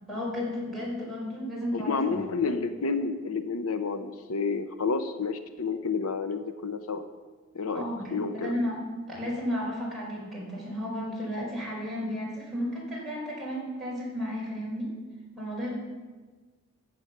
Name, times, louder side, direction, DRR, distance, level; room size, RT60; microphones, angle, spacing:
voice 1, 0.0-2.3 7.7-8.8 9.1-14.9 15.4-15.7, equal, ahead, -6 dB, 5.3 m, -33 dB
voice 2, 1.7-7.0 7.5-7.8 8.1-8.5, left 4 dB, 85° left, 9 dB, 0.8 m, -30 dB
15.0 x 7.9 x 6.8 m, 1.4 s
head